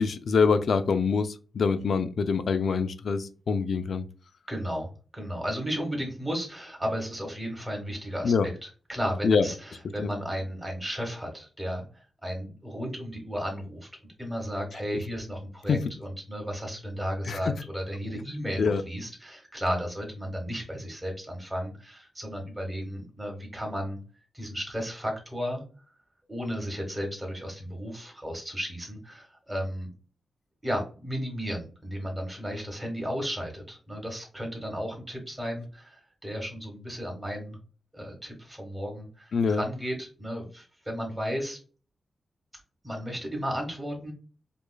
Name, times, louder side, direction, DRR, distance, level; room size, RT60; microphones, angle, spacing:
voice 1, 0.0-4.0 8.2-8.5 9.2-9.5 10.0-10.1 15.7-15.8 17.3-17.5 18.6-18.8 39.3-39.6, left 5 dB, 70° left, 0.4 m, -25 dB
voice 2, 4.5-8.3 8.6-11.8 12.2-13.9 14.2-24.0 24.3-25.6 26.3-29.9 30.6-37.6 37.9-41.6 42.8-44.1, equal, 10° right, 1.4 m, -34 dB
4.8 x 2.4 x 2.3 m
wide cardioid pair, 100°, 0 cm